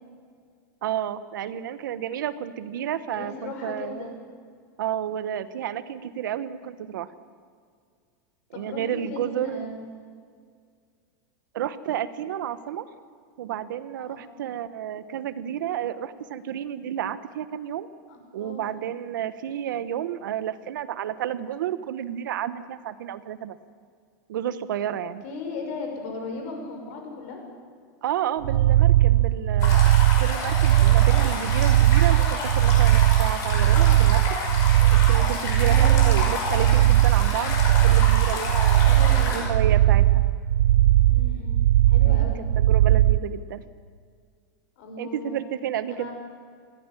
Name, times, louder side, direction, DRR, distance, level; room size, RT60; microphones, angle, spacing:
voice 1, 0.8-4.1 4.8-7.1 8.5-9.7 11.5-12.9 13.4-17.9 18.3-23.6 24.3-25.2 28.0-34.4 35.1-38.9 39.3-40.2 42.0-43.6 45.0-46.1, right 10 dB, 85° right, 13 dB, 1.3 m, -31 dB
voice 2, 3.1-4.1 8.5-9.9 14.0-14.3 18.1-18.7 25.2-27.4 35.6-36.1 38.9-39.5 41.1-42.5 44.8-45.4 45.9-46.1, left 3 dB, 50° left, 2 dB, 6.0 m, -37 dB
sound 1, 28.4-43.2, right 14 dB, 70° right, 0.5 m, -19 dB
sound 2, 29.6-39.4, left 3 dB, 30° left, 5.7 m, -30 dB
21.0 x 15.5 x 10.0 m, 2.1 s
supercardioid pair, 175°, 10 cm